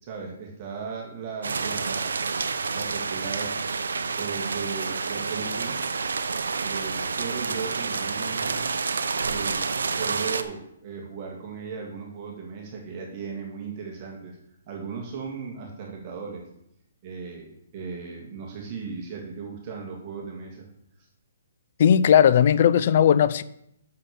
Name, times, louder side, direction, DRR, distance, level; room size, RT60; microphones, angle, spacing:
voice 1, 0.0-2.3 2.7-3.6 4.2-5.9 6.6-8.7 9.2-9.6 10.0-14.4 14.7-16.5 17.0-20.7, right 5 dB, 35° right, 2.0 m, -36 dB
sound 1, 1.4-10.4, right 4 dB, 80° right, 0.7 m, -29 dB
voice 2, 21.8-23.4, left 9 dB, 50° left, 0.5 m, -17 dB
6.6 x 5.7 x 6.9 m
hypercardioid pair, 145°, 0 cm